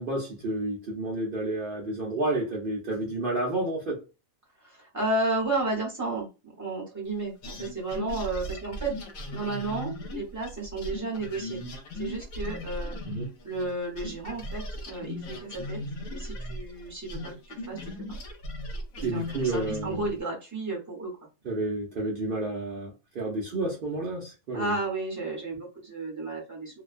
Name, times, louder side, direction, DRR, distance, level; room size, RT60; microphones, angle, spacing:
voice 1, 0.0-4.0 13.0-13.3 19.0-20.1 21.4-24.7, right 2 dB, 60° right, 0.6 m, -30 dB
voice 2, 4.6-8.9 9.3-11.6 12.0-13.0 13.4-15.8 16.1-17.9 19.0-21.1 24.5-26.8, right 2 dB, 15° right, 0.7 m, -32 dB
sound 1, 7.4-13.7 14.0-20.2, left 1 dB, 80° left, 1.0 m, -37 dB
2.4 x 2.1 x 2.4 m
omnidirectional pair, 1.5 m